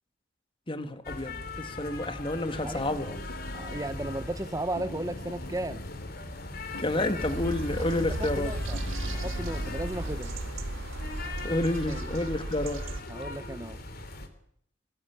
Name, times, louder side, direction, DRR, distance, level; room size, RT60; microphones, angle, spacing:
voice 1, 0.7-3.2 6.8-8.5 11.4-12.9, left 1 dB, 25° left, 8 dB, 2.1 m, -30 dB
sound 1, 1.0-14.3, left 2 dB, 50° left, 3.3 m, -39 dB
sound 2, 2.4-10.1, left 1 dB, 90° left, 2.7 m, -45 dB
voice 2, 3.5-5.9 7.9-10.3 11.9-12.1 13.1-13.8, right 1 dB, 15° right, 12 dB, 1.0 m, -35 dB
sound 3, 7.2-13.0, right 1 dB, 90° right, 1.7 m, -36 dB
22.0 x 20.0 x 8.8 m, 0.67 s
head